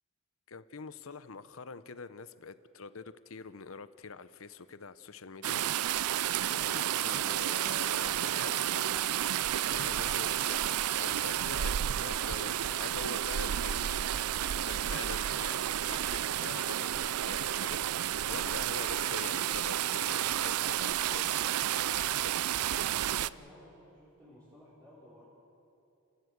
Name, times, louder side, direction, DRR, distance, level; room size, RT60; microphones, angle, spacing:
voice 1, 0.5-5.6 6.4-9.0 9.7-14.0 14.5-21.4, left 4 dB, 65° left, 13 dB, 0.8 m, -45 dB
sound 1, 5.4-23.3, right 11 dB, 85° right, 0.4 m, -31 dB
voice 2, 22.8-25.3, left 1 dB, 15° right, -10 dB, 4.9 m, -55 dB
29.5 x 15.5 x 8.0 m, 2.7 s
head